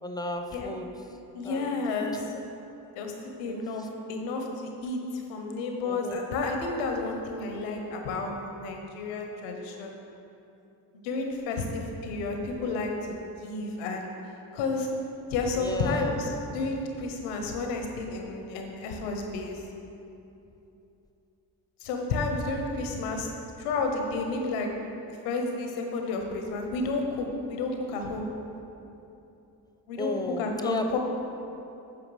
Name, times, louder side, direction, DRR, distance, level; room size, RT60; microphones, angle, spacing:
voice 1, 0.0-0.9 1.4-1.8 2.8-2.9 3.4-3.9 5.9-6.2 15.6-16.1 30.0-31.0, left 1 dB, 10° left, 4 dB, 0.7 m, -34 dB
voice 2, 1.3-2.3 2.9-3.1 3.4-9.9 11.0-14.1 14.5-14.9 15.3-19.6 21.8-23.3 23.6-24.7 25.1-28.2 29.9-31.0, left 3 dB, 90° left, 3 dB, 0.9 m, -31 dB
13.0 x 4.9 x 3.2 m, 2.9 s
hypercardioid pair, 45°, 49 cm